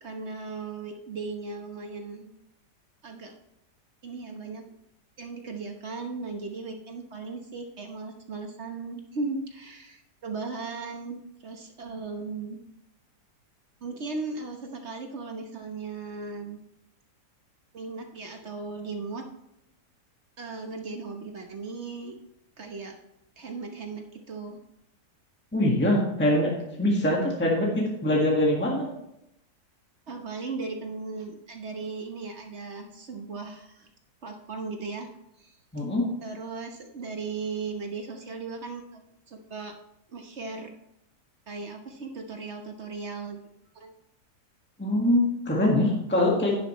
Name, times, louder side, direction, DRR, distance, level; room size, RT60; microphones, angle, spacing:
voice 1, 0.0-2.3 3.0-3.3 4.0-4.7 5.2-12.6 13.8-16.6 17.7-19.2 20.4-22.2 22.6-22.9 23.4-24.6 30.1-33.9 34.2-35.1 35.4-35.6 36.2-39.7 40.1-40.7 41.5-43.4 43.7-43.9, right 4 dB, 45° right, 4 dB, 1.2 m, -37 dB
voice 2, 25.5-28.9 35.7-36.1 44.8-46.5, left 1 dB, 5° left, -2 dB, 1.5 m, -23 dB
11.0 x 10.5 x 3.1 m, 0.83 s
omnidirectional pair, 1.8 m